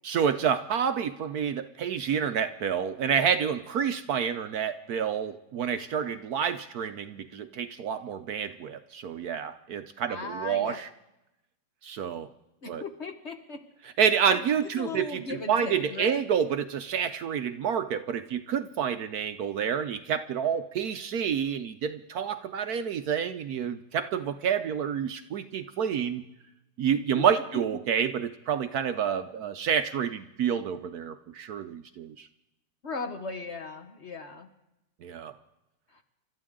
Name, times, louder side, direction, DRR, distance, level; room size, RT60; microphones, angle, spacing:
voice 1, 0.0-10.9 11.8-12.3 12.7-12.8 14.0-26.2 26.8-32.3 35.0-35.3, right 7 dB, 65° right, 10 dB, 1.1 m, -28 dB
voice 2, 10.1-10.8 12.6-13.6 14.3-14.4 14.8-16.2 27.2-27.3 32.8-34.5 35.9-36.0, left 3 dB, 40° left, 6 dB, 1.3 m, -37 dB
29.5 x 13.0 x 3.7 m, 0.91 s
omnidirectional pair, 1.9 m